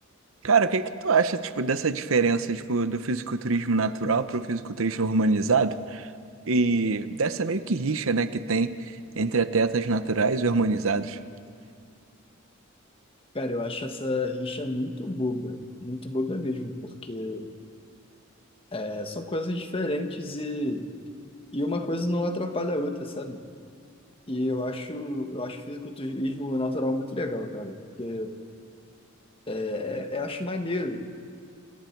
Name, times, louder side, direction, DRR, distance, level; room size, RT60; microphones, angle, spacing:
voice 1, 0.4-6.1 6.5-11.2, right 4 dB, 75° right, 12 dB, 0.8 m, -25 dB
voice 2, 13.3-17.5 18.7-20.9 21.5-23.4 24.3-28.4 29.5-31.1, left 1 dB, 25° left, 6 dB, 1.4 m, -30 dB
28.0 x 27.0 x 4.6 m, 2.2 s
head